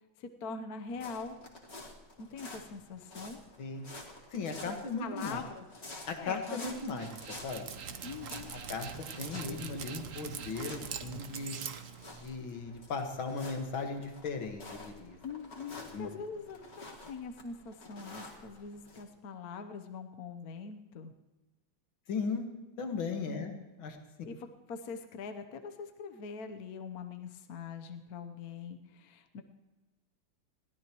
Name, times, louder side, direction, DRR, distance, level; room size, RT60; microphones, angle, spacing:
voice 1, 0.2-1.4 2.2-3.4 5.0-5.6 6.2-6.7 8.0-8.5 15.2-21.1 23.3-23.6 24.2-29.4, left 5 dB, 55° left, 7 dB, 1.3 m, -43 dB
sound 1, 0.9-19.0, left 2 dB, 35° left, 2.3 m, -50 dB
voice 2, 4.3-5.4 6.1-7.6 8.7-8.9 9.2-11.6 12.2-15.2 15.9-16.1 22.1-22.5 22.8-23.5 23.8-24.0, left 4 dB, 90° left, 4 dB, 2.4 m, -37 dB
Dog, 6.7-12.5, right 7 dB, 50° right, 1.1 m, -43 dB
22.0 x 16.5 x 3.1 m, 1.2 s
omnidirectional pair, 2.1 m